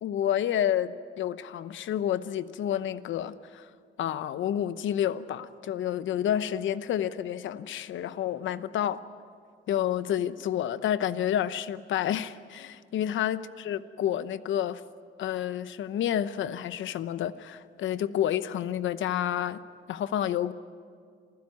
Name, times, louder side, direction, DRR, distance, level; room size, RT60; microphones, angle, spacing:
voice 1, 0.0-3.7 4.0-9.0 9.7-14.8 15.2-19.6 19.9-20.5, left 10 dB, 75° left, 14 dB, 0.9 m, -29 dB
27.5 x 15.5 x 9.6 m, 2.1 s
cardioid pair, 90°, 20 cm